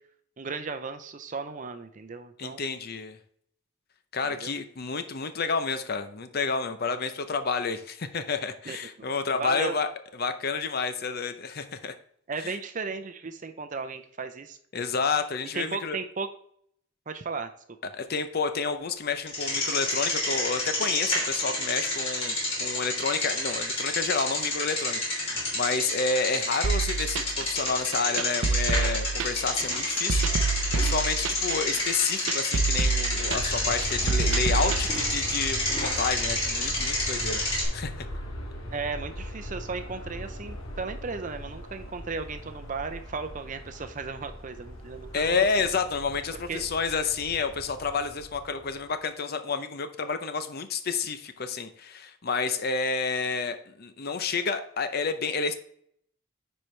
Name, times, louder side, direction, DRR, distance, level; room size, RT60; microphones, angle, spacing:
voice 1, 0.4-2.7 4.2-4.5 8.6-8.8 9.3-9.7 12.3-14.6 15.5-16.3 17.1-17.5 38.7-45.2 45.6-45.7 46.3-46.6, right 4 dB, 40° right, 9 dB, 0.6 m, -35 dB
voice 2, 2.4-3.2 4.1-9.9 10.2-11.9 12.4-12.5 14.7-16.0 17.9-38.1 45.1-55.6, left 4 dB, 50° left, 9 dB, 0.6 m, -30 dB
Bicycle, 19.3-37.7, left 1 dB, 30° left, 2.7 m, -29 dB
sound 1, 26.6-34.8, right 4 dB, 75° right, 0.7 m, -27 dB
Aircraft, 32.9-48.9, equal, 90° left, 1.6 m, -39 dB
9.6 x 4.5 x 3.2 m, 0.65 s
head